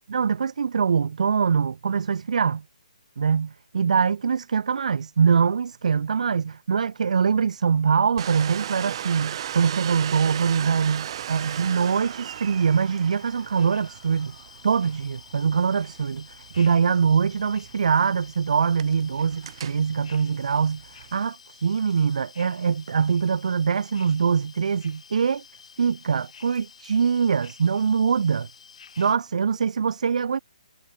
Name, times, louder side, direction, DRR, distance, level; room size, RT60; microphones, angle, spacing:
voice 1, 0.1-2.6 3.2-14.4 14.6-25.4 25.8-28.5 29.0-30.4, right 6 dB, 60° right, 1.7 m, -23 dB
Domestic sounds home sounds, 8.2-21.3, right 10 dB, 40° right, 5.5 m, -37 dB
sound 1, 11.3-29.1, left 7 dB, 55° left, 7.1 m, -50 dB
hypercardioid pair, 155°, 4 cm